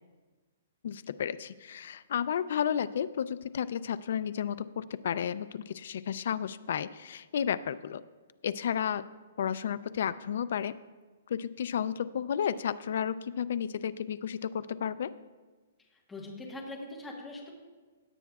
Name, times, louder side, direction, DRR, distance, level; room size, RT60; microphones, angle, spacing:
voice 1, 0.8-8.0 8.4-9.0 9.4-10.7 11.3-15.1, left 8 dB, 50° left, 15 dB, 0.3 m, -32 dB
voice 2, 15.8-17.5, left 2 dB, 5° left, -2 dB, 1.2 m, -42 dB
17.0 x 9.2 x 2.4 m, 1.3 s
hypercardioid pair, 175°, 0 cm